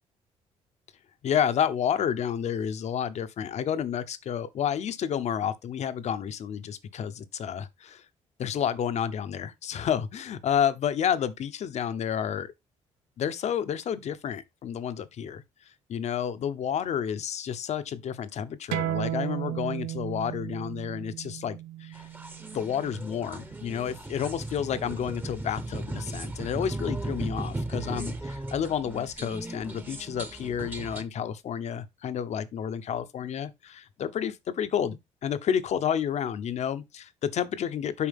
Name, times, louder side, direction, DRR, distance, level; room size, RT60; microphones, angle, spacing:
voice 1, 1.2-8.0 8.4-12.5 13.2-15.4 15.9-22.1 22.5-38.1, left 8 dB, 60° left, 0.9 m, -30 dB
sound 1, 18.7-23.9, right 13 dB, 90° right, 0.6 m, -35 dB
sound 2, 21.9-31.0, right 2 dB, 15° right, 1.1 m, -36 dB
8.6 x 5.0 x 3.6 m
supercardioid pair, 65°, 13 cm